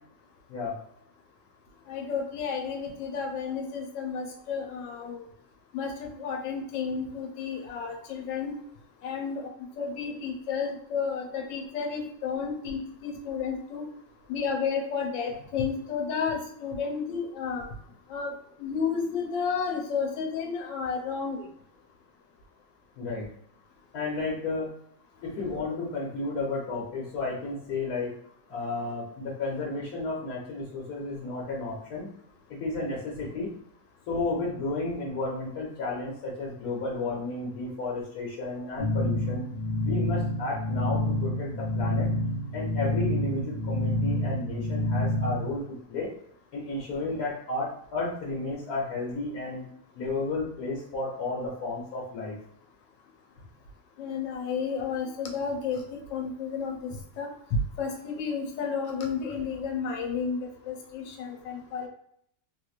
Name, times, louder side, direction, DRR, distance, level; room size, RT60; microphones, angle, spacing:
voice 1, 1.9-5.3 5.7-8.6 9.0-9.5 9.8-13.8 14.3-17.6 18.1-21.5 25.4-25.6 54.0-57.3 57.8-60.4 60.6-61.9, left 6 dB, 85° left, 2 dB, 1.4 m, -32 dB
voice 2, 23.9-24.7 25.2-28.1 28.5-32.1 32.5-33.5 34.1-39.5 39.8-42.1 42.5-46.1 46.5-49.7 49.9-52.3, left 3 dB, 65° left, -4 dB, 1.3 m, -32 dB
sound 1, 38.8-45.5, left 1 dB, 30° left, 0.4 m, -28 dB
3.3 x 3.0 x 2.4 m, 0.69 s
omnidirectional pair, 1.9 m